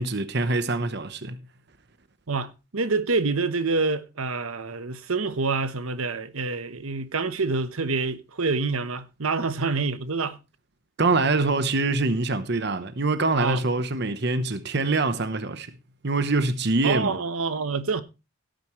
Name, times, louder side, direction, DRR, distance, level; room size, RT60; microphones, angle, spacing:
voice 1, 0.0-1.4 11.0-15.7 16.0-17.2, right 3 dB, 50° right, 0.9 m, -24 dB
voice 2, 2.3-10.4 13.3-13.6 16.8-18.0, right 4 dB, 80° right, 1.1 m, -27 dB
17.0 x 9.1 x 3.1 m
head